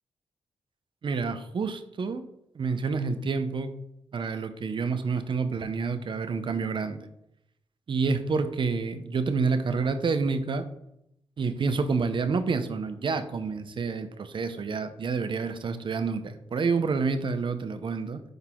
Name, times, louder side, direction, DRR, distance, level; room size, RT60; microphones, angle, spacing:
voice 1, 1.0-2.2 2.5-3.7 4.1-7.1 7.9-10.7 11.4-18.2, right 4 dB, 55° right, 9 dB, 0.8 m, -28 dB
10.5 x 4.0 x 3.8 m, 0.79 s
supercardioid pair, 50°, 10 cm